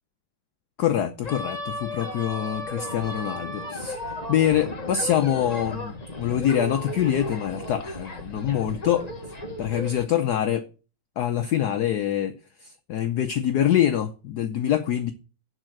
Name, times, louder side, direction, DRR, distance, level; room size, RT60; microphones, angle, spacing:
voice 1, 0.8-4.0 4.3-9.1 9.6-10.7 11.2-15.1, left 10 dB, 65° left, 1.1 m, -25 dB
sound 1, 1.2-10.0, left 1 dB, 25° left, 1.3 m, -35 dB
11.5 x 4.1 x 7.7 m
omnidirectional pair, 2.2 m